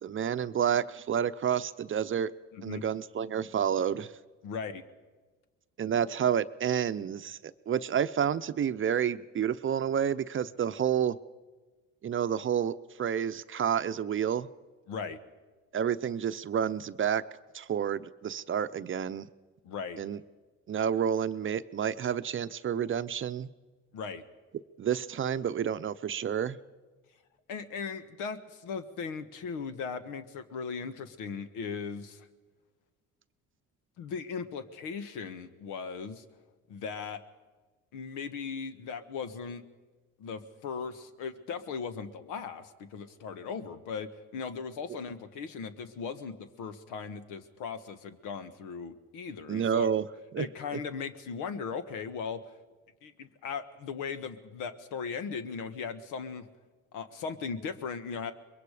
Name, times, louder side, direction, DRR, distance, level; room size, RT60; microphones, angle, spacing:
voice 1, 0.0-2.3 2.6-4.1 5.8-11.2 12.0-14.5 15.7-17.2 17.5-19.3 20.0-20.2 20.7-23.5 24.8-26.6 49.5-50.0 50.3-50.5 50.7-50.8, right 8 dB, 40° right, 12 dB, 0.7 m, -29 dB
voice 2, 2.5-2.8 4.4-4.8 14.9-15.2 19.6-20.0 23.9-24.2 27.5-32.3 34.0-36.2 36.7-37.2 37.9-39.6 40.2-49.9 50.4-52.4 53.0-56.5 56.9-58.3, left 5 dB, 80° left, 10 dB, 1.4 m, -38 dB
24.0 x 21.5 x 5.0 m, 1.3 s
supercardioid pair, 80°, 32 cm